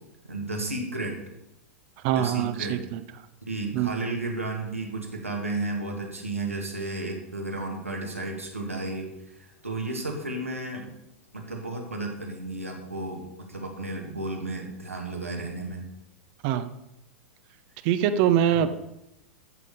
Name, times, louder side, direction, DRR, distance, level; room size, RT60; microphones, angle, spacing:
voice 1, 0.2-1.2 2.1-2.8 3.4-10.9 11.3-15.8 18.5-18.7, right 2 dB, 90° right, 0 dB, 2.4 m, -33 dB
voice 2, 2.0-3.0 3.7-3.9 16.4-16.7 17.8-18.7, right 10 dB, 45° right, 11 dB, 0.9 m, -23 dB
13.5 x 6.9 x 5.2 m, 0.88 s
figure-of-eight pair, 95°, 7 cm